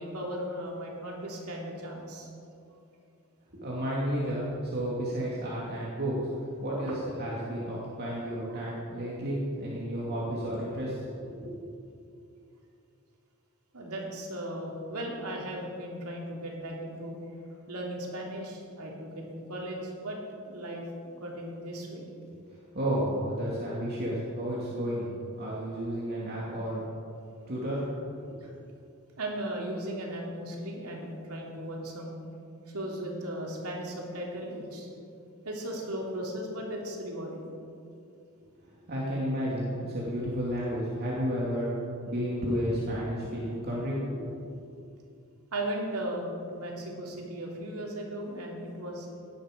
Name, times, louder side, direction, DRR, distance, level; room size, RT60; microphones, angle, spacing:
voice 1, 0.0-2.3 6.9-7.0 8.5-8.6 13.7-17.3 17.7-20.2 20.4-22.1 28.4-28.5 29.2-32.2 32.7-34.9 35.4-37.4 45.5-49.1, right 1 dB, 85° right, -1 dB, 3.1 m, -37 dB
voice 2, 3.5-11.6 22.7-25.1 25.4-26.8 27.5-27.9 28.3-28.4 38.7-41.7 42.1-44.2, equal, 45° right, -6 dB, 2.6 m, -32 dB
18.0 x 11.0 x 5.3 m, 2.6 s
head